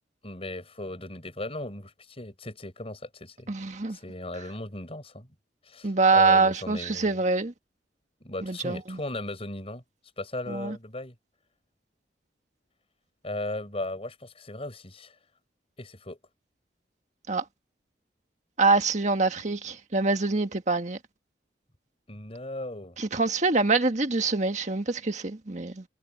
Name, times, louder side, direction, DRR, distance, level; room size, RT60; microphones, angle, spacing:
voice 1, 0.2-3.5 3.9-5.3 5.6-7.2 8.2-9.8 10.2-11.1 13.2-15.2 15.8-16.2 22.1-23.0, left 1 dB, 35° left, 6.5 m, -37 dB
voice 2, 3.5-4.0 5.8-7.5 8.4-9.0 10.5-10.7 17.3-17.4 18.6-21.0 23.0-25.8, right 3 dB, 40° right, 1.7 m, -25 dB
head